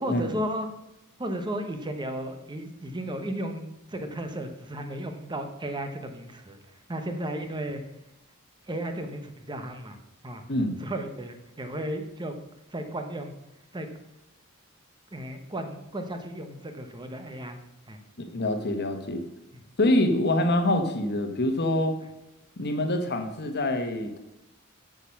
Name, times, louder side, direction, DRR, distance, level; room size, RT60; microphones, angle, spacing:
voice 1, 0.0-0.7 1.2-7.8 8.7-10.0 10.2-10.4 10.8-12.3 12.7-13.3 13.7-13.9 15.1-17.6 17.9-18.0 19.5-19.6, right 1 dB, 20° right, 6 dB, 0.9 m, -34 dB
voice 2, 18.2-19.2 19.8-22.0 22.6-24.2, left 1 dB, 50° left, 7 dB, 1.3 m, -25 dB
8.8 x 7.2 x 5.8 m, 0.91 s
head